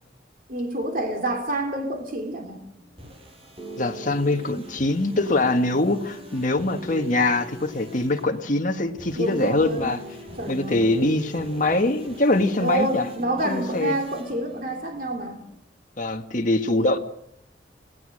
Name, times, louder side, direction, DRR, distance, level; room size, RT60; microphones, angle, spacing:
voice 1, 0.5-2.6 9.2-9.9 10.4-10.9 12.6-15.4 16.7-16.9, right 1 dB, 50° right, 2 dB, 3.1 m, -28 dB
sound 1, 2.8-15.6, equal, 30° right, 5.6 m, -41 dB
voice 2, 3.8-10.0 10.5-13.0 13.4-13.9 16.0-17.0, left 2 dB, 45° left, 4 dB, 1.8 m, -23 dB
29.0 x 18.5 x 6.6 m, 0.75 s
head